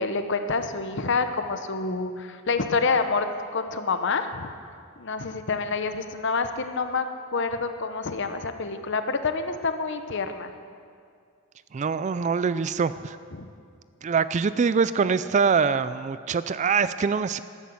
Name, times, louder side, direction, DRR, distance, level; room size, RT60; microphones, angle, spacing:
voice 1, 0.0-3.3 3.5-4.5 5.0-10.5 13.3-13.5, left 4 dB, 55° left, 8 dB, 0.8 m, -27 dB
voice 2, 11.7-13.2 14.0-17.4, right 5 dB, 35° right, 14 dB, 0.3 m, -24 dB
12.5 x 12.5 x 7.7 m, 2.2 s
head